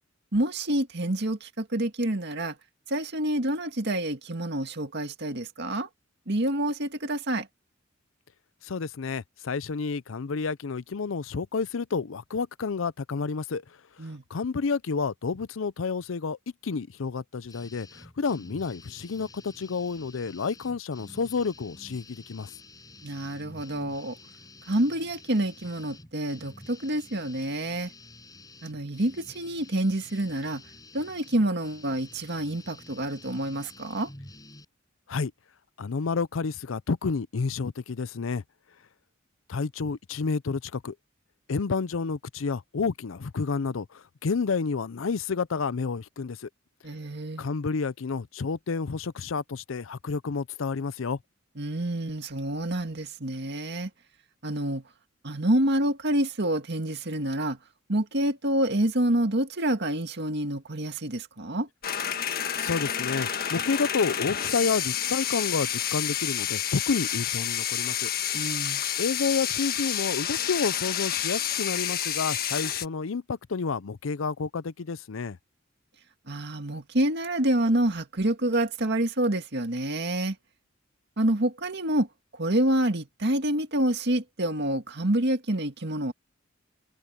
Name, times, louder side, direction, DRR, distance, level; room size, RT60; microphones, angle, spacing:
voice 1, 0.3-2.5 2.9-5.9 6.3-7.5 14.0-14.2 23.0-24.2 24.7-27.9 28.6-30.6 30.9-34.1 46.8-47.4 51.6-53.9 54.4-54.8 55.2-57.6 57.9-61.7 68.3-68.8 76.3-80.4 81.2-82.1 82.4-86.1, right 1 dB, 55° right, 2.1 m, -27 dB
voice 2, 8.6-13.6 14.3-16.4 16.6-22.5 35.1-35.3 35.8-38.4 39.5-40.9 41.5-46.5 47.4-51.2 62.6-68.1 68.4-68.5 69.0-75.4, left 5 dB, 75° left, 0.6 m, -30 dB
sound 1, 17.5-34.7, left 2 dB, 20° left, 7.3 m, -49 dB
sound 2, 61.8-72.9, left 9 dB, 50° left, 1.5 m, -29 dB
head